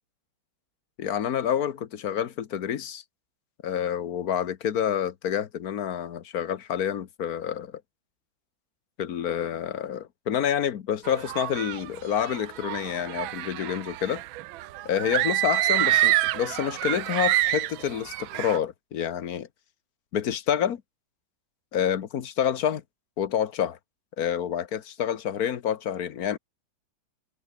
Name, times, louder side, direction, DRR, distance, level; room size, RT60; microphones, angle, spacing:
voice 1, 1.0-3.0 3.6-7.8 9.0-14.2 14.8-19.5 20.1-20.8 21.7-22.8 23.2-23.8 24.2-26.4, left 9 dB, 55° left, 1.5 m, -28 dB
sound 1, 11.0-18.6, right 16 dB, 90° right, 1.4 m, -27 dB
omnidirectional pair, 2.1 m